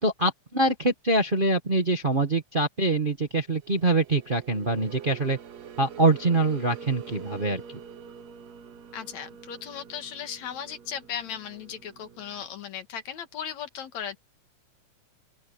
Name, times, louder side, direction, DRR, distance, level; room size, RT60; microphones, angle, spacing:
voice 1, 0.0-5.4 5.8-7.6, right 2 dB, 30° right, 1.1 m, -24 dB
sound 1, 3.4-12.5, right 7 dB, 70° right, 2.7 m, -46 dB
voice 2, 8.9-14.2, left 8 dB, 75° left, 2.9 m, -37 dB
open air
omnidirectional pair, 3.3 m